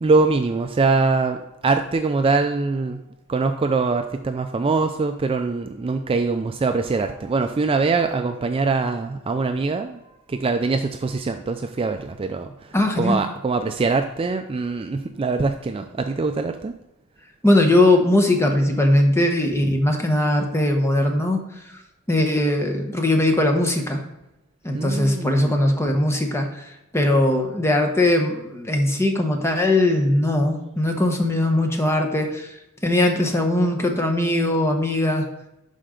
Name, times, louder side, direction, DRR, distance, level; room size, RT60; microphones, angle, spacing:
voice 1, 0.0-1.4 1.6-3.0 3.3-10.0 10.3-12.5 13.0-16.7 24.7-25.5, right 3 dB, 25° right, 6 dB, 0.3 m, -23 dB
voice 2, 12.7-13.2 17.4-21.4 22.1-24.0 24.6-26.7 26.9-32.5 32.8-35.3, left 1 dB, 10° left, 3 dB, 1.0 m, -20 dB
11.5 x 4.3 x 3.8 m, 0.90 s
head